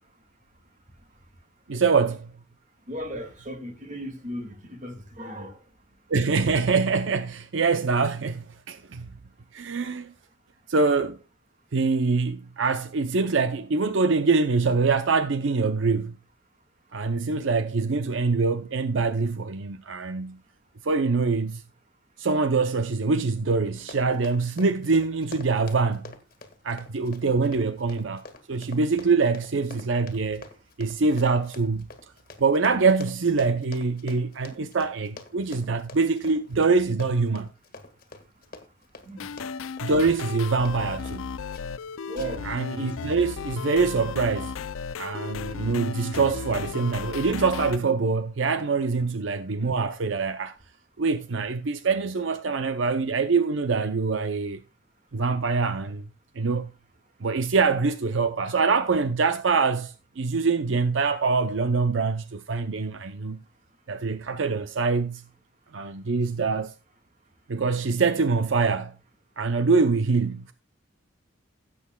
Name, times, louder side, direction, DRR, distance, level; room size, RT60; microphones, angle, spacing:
voice 1, 1.7-2.3 6.1-9.1 9.5-10.1 10.7-11.2 11.7-16.2 16.9-20.4 20.8-21.6 22.2-26.1 26.6-30.5 30.8-31.9 32.4-37.5 39.8-41.3 42.4-44.6 45.0-50.6 51.0-54.6 55.1-56.1 56.4-56.7 57.2-63.4 63.9-65.2 65.7-66.7 67.5-68.9 69.4-70.5, right 4 dB, 70° right, 0.6 m, -24 dB
voice 2, 2.9-5.6 39.0-39.3 42.1-42.4, right 1 dB, 40° right, 2.0 m, -36 dB
Run, 23.7-41.2 41.5-41.8 42.2-42.5 42.9-43.0, left 3 dB, 45° left, 1.8 m, -46 dB
sound 1, 39.2-47.8, left 6 dB, 85° left, 0.4 m, -35 dB
16.5 x 8.4 x 2.3 m
head